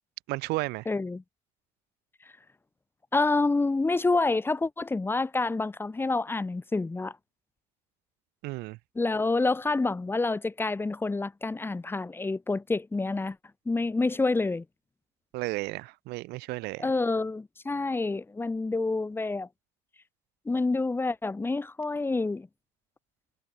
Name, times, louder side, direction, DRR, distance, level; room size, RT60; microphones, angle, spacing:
voice 1, 0.3-0.9 8.4-8.8 15.3-16.9, right 21 dB, 65° right, 2.0 m, -33 dB
voice 2, 0.9-1.2 3.1-7.1 9.0-13.4 13.7-14.6 16.8-19.5 20.5-22.5, left 3 dB, 10° left, 2.6 m, -28 dB
supercardioid pair, 125°, 18 cm